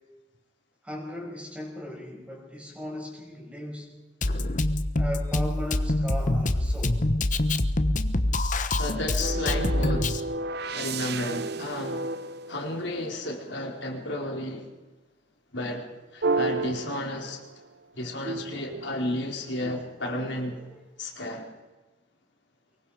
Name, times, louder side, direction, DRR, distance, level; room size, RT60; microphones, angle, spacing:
voice 1, 0.8-3.9 5.0-7.0 16.8-17.0 20.5-20.8, left 1 dB, 5° right, 0 dB, 5.9 m, -38 dB
Drum kit, 4.2-10.2, left 1 dB, 45° left, 1.2 m, -25 dB
voice 2, 8.8-12.2 12.5-14.7 15.5-17.4 17.9-20.6 21.0-21.5, left 1 dB, 65° left, 1 dB, 4.4 m, -33 dB
sound 1, 9.2-13.4 16.2-17.7 18.2-20.0, right 3 dB, 55° right, 0.8 m, -32 dB
24.5 x 22.5 x 5.0 m, 1.2 s
head